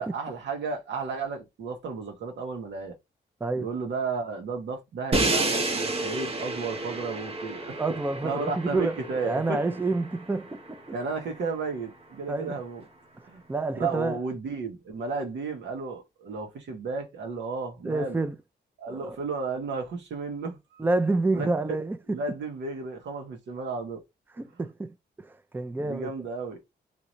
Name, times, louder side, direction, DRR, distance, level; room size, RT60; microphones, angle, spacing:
voice 1, 0.0-2.9 3.5-7.8 8.2-9.6 10.9-12.8 13.2-13.4 13.7-18.2 18.8-20.8 21.3-21.8 22.1-24.0 25.8-26.6, right 4 dB, 85° right, 1.3 m, -33 dB
Crash cymbal, 5.1-11.1, right 2 dB, 35° right, 0.8 m, -31 dB
voice 2, 7.8-9.0 9.2-10.8 12.3-12.6 13.2-14.2 17.8-18.4 18.9-19.2 20.8-22.2 24.4-26.1, right 2 dB, 10° right, 0.5 m, -28 dB
3.1 x 2.7 x 2.6 m
cardioid pair, 90°, 18 cm